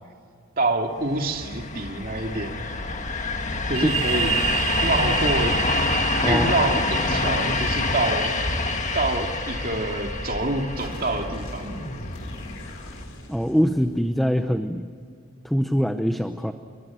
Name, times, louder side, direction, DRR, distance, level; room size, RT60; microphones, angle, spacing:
voice 1, 0.6-2.6 3.7-4.3 4.8-5.6 6.2-8.4 8.9-11.7, right 2 dB, 40° right, 3 dB, 2.5 m, -26 dB
sound 1, 1.1-13.0, left 3 dB, 35° left, 1.7 m, -27 dB
sound 2, 3.7-11.2, right 9 dB, 75° right, 2.0 m, -31 dB
sound 3, 10.8-14.5, left 1 dB, 75° left, 4.9 m, -38 dB
voice 2, 13.3-14.9 15.4-16.5, equal, ahead, 7 dB, 0.8 m, -23 dB
28.5 x 24.0 x 7.5 m, 2.2 s
head